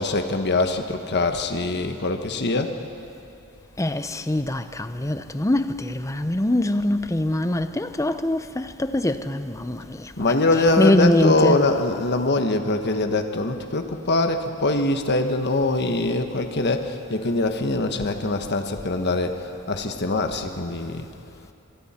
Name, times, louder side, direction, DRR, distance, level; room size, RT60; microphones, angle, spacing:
voice 1, 0.0-2.7 10.2-19.4 19.7-21.1, left 2 dB, 50° left, 1.3 m, -23 dB
voice 2, 3.8-11.6, left 1 dB, 15° left, 0.7 m, -23 dB
26.5 x 23.0 x 4.4 m
head